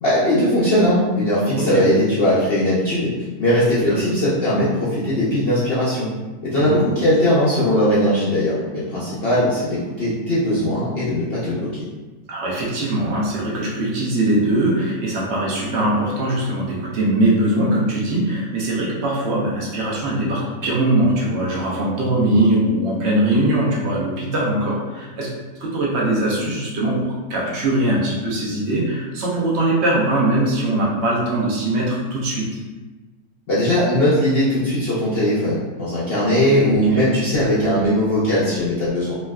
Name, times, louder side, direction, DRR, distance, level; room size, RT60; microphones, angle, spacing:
voice 1, 0.0-3.1 3.4-6.1 6.4-11.8 33.5-39.1, equal, 60° left, -9 dB, 0.6 m, -19 dB
voice 2, 1.6-1.9 3.8-4.2 6.6-6.8 12.3-25.3 25.6-32.6 36.7-37.0, right 1 dB, 55° right, -4 dB, 0.8 m, -21 dB
3.2 x 2.7 x 2.2 m, 1.2 s
omnidirectional pair, 1.7 m